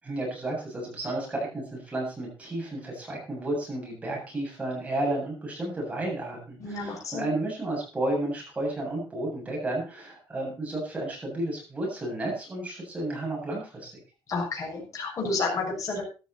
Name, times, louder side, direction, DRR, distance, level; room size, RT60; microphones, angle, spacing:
voice 1, 0.0-13.9, right 1 dB, 15° right, -2 dB, 7.7 m, -32 dB
voice 2, 6.6-7.3 14.3-16.0, left 3 dB, 35° left, -1 dB, 6.8 m, -30 dB
14.5 x 12.5 x 4.2 m, 0.34 s
cardioid pair, 155°, 9 cm